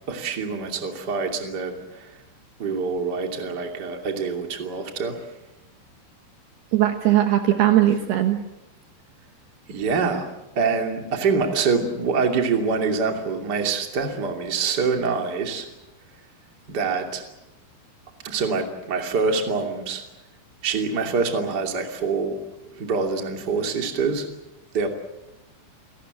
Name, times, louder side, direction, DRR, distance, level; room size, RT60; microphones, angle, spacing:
voice 1, 0.1-2.1 2.6-5.2 9.7-10.3 10.5-15.7 16.7-17.2 18.2-20.0 20.6-22.4 22.7-24.3 24.7-24.9, right 4 dB, 30° right, 4 dB, 2.3 m, -25 dB
voice 2, 6.7-8.4, right 12 dB, 70° right, 6 dB, 2.9 m, -19 dB
29.0 x 18.5 x 7.9 m, 0.98 s
omnidirectional pair, 5.7 m